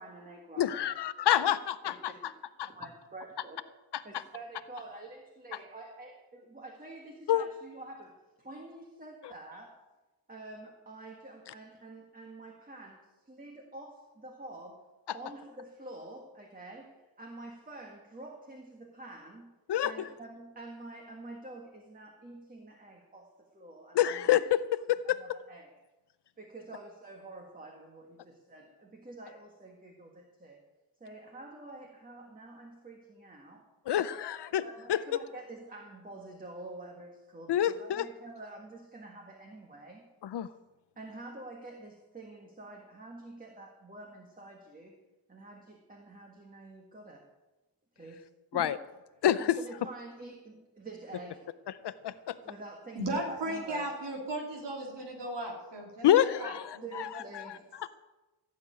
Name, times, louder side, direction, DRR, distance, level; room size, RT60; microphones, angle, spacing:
voice 1, 0.0-0.9 1.2-1.5 1.9-2.0 2.2-2.3 2.7-3.6 4.0-9.8 10.3-14.8 15.1-19.5 19.8-24.3 25.0-25.7 26.4-30.6 31.0-33.7 34.6-40.1 41.0-44.9 45.3-47.3 47.9-48.2 48.5-48.7 49.4-51.5 52.4-53.9 56.8-57.6, right 2 dB, 20° right, 1 dB, 1.7 m, -47 dB
voice 2, 0.6-1.6 7.3-7.4 19.7-20.1 23.9-25.2 33.9-34.6 34.9-35.0 37.5-38.0 40.2-40.5 48.5-48.8 49.2-49.6 51.8-52.4 56.0-57.1 57.4-57.5, left 11 dB, 70° left, 13 dB, 0.6 m, -27 dB
voice 3, 52.9-56.8, right 1 dB, 75° right, -1 dB, 3.3 m, -36 dB
15.5 x 6.6 x 9.3 m, 1.1 s
wide cardioid pair, 145°, 42 cm